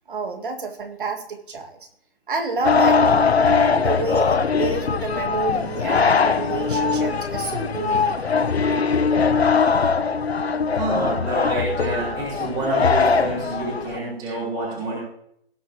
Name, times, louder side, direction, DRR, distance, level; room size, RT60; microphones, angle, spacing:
voice 1, 0.1-1.8 2.3-3.5 3.8-8.3, right 3 dB, 55° right, 5 dB, 2.0 m, -29 dB
sound 1, 2.6-14.0, left 5 dB, 85° left, 1.0 m, -21 dB
voice 2, 10.8-15.0, right 2 dB, 15° right, -7 dB, 3.6 m, -27 dB
18.0 x 8.4 x 2.9 m, 0.69 s
hypercardioid pair, 160°, 31 cm